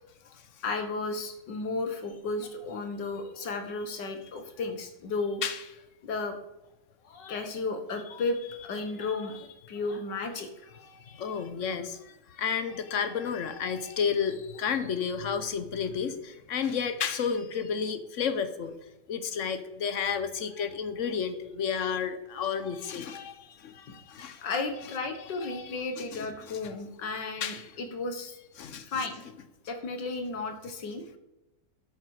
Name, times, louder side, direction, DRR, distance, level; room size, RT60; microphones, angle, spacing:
voice 1, 0.6-5.4 6.0-6.4 7.0-10.5 23.0-23.1 23.9-24.0 24.4-28.4 28.9-29.2 29.7-31.2, left 3 dB, 80° left, 7 dB, 2.0 m, -34 dB
voice 2, 10.8-12.0 12.4-18.8 19.1-24.5 25.2-25.7 26.0-26.6 27.4-27.7 28.6-29.0, left 6 dB, 55° left, 11 dB, 1.1 m, -32 dB
12.0 x 8.1 x 4.8 m, 0.93 s
omnidirectional pair, 1.9 m